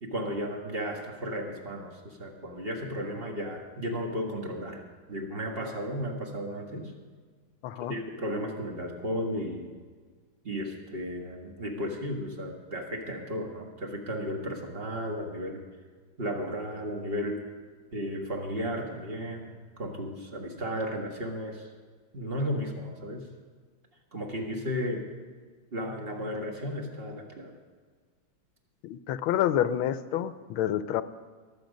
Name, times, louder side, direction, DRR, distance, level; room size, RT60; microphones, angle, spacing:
voice 1, 0.0-6.9 7.9-9.7 10.4-15.7 16.2-17.5 17.9-21.7 22.1-23.3 24.1-25.1 25.7-27.6, equal, 30° right, 2 dB, 1.7 m, -34 dB
voice 2, 7.6-7.9 28.8-31.0, left 11 dB, 85° left, 14 dB, 1.5 m, -28 dB
22.0 x 7.7 x 5.2 m, 1.5 s
omnidirectional pair, 2.2 m